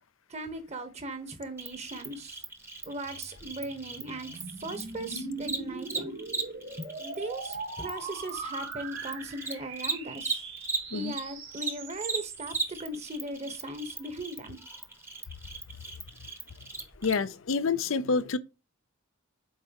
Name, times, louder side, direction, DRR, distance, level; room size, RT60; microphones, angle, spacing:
voice 1, 0.3-2.4 2.8-6.1 6.8-10.4 10.9-14.6, right 1 dB, 35° right, 1.3 m, -38 dB
Cricket, 1.6-11.2 11.5-17.1, right 4 dB, 10° right, 1.0 m, -37 dB
sound 1, 3.1-12.8, right 4 dB, 65° right, 2.2 m, -41 dB
voice 2, 17.0-18.4, left 4 dB, 70° left, 0.6 m, -28 dB
7.4 x 4.7 x 3.0 m
head